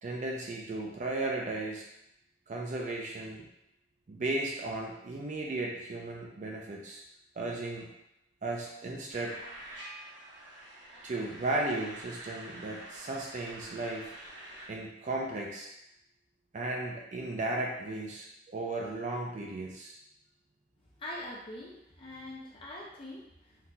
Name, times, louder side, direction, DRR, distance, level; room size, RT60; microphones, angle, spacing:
voice 1, 0.0-1.8 2.5-3.4 4.1-7.0 7.4-7.9 8.4-9.4 11.0-14.1 14.7-15.7 16.5-20.0, right 2 dB, 45° right, -1 dB, 0.4 m, -35 dB
sound 1, 9.1-14.7, right 1 dB, 85° right, 1.0 m, -47 dB
voice 2, 21.0-23.7, left 1 dB, 30° left, -5 dB, 0.5 m, -43 dB
3.8 x 2.7 x 2.3 m, 0.82 s
head